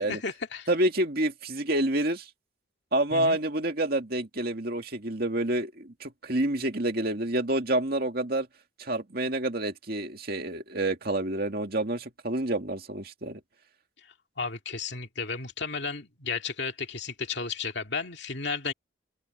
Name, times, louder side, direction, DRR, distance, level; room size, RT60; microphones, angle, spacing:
voice 1, 0.0-0.7 3.1-3.4 14.4-18.7, left 5 dB, 55° left, 2.4 m, -33 dB
voice 2, 0.7-2.3 2.9-8.5 8.8-13.4, right 1 dB, 50° right, 2.3 m, -28 dB
head